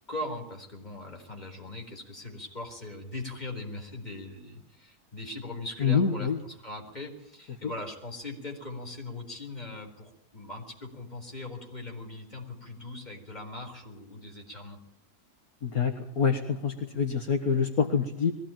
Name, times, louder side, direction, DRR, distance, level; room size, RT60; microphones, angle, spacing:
voice 1, 0.1-14.8, left 2 dB, 25° left, 2 dB, 4.5 m, -40 dB
voice 2, 5.8-6.4 15.6-18.3, left 6 dB, 65° left, 5 dB, 1.9 m, -26 dB
22.0 x 16.0 x 9.1 m, 0.75 s
omnidirectional pair, 1.7 m